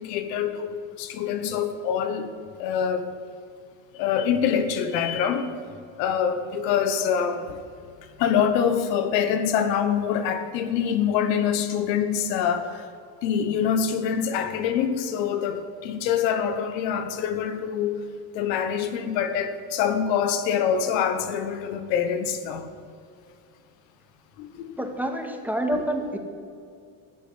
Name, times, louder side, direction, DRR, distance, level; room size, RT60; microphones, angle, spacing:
voice 1, 0.0-2.3 2.6-3.1 3.9-5.5 6.0-7.6 8.2-12.8 13.2-18.0 18.3-22.7 24.4-24.7 25.7-25.8, left 8 dB, 90° left, 1.3 m, -25 dB
voice 2, 24.8-26.2, right 1 dB, 5° right, 1.9 m, -27 dB
15.0 x 6.9 x 9.9 m
supercardioid pair, 105°, 48 cm